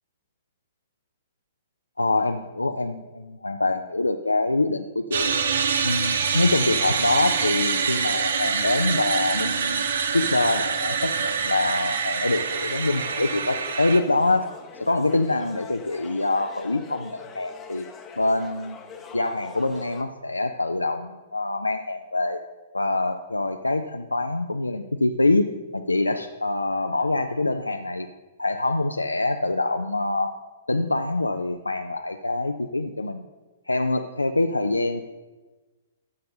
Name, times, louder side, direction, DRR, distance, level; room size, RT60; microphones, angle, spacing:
voice 1, 2.0-5.3 5.8-14.5 14.8-17.9 18.2-18.8 19.1-22.4 22.7-28.1 28.4-30.3 30.7-33.2 33.7-35.0, left 2 dB, 80° left, 6 dB, 0.4 m, -25 dB
sound 1, 5.1-14.0, right 6 dB, 60° right, 0.7 m, -25 dB
sound 2, 12.3-20.0, left 5 dB, 20° left, 0.8 m, -43 dB
13.5 x 6.4 x 2.6 m, 1.2 s
figure-of-eight pair, 110°, 0 cm